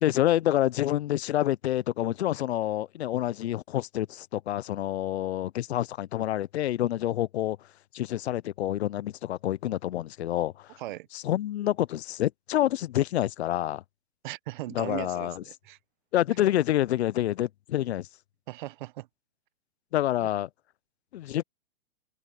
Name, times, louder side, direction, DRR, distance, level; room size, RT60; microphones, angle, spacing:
voice 1, 0.0-7.6 7.9-10.8 11.1-13.8 14.7-15.4 16.1-18.1 19.9-20.5 21.1-21.4, left 13 dB, 80° left, 0.5 m, -27 dB
voice 2, 14.2-15.8 18.5-19.1 20.2-20.3, right 16 dB, 50° right, 1.1 m, -38 dB
open air
hypercardioid pair, 145°, 32 cm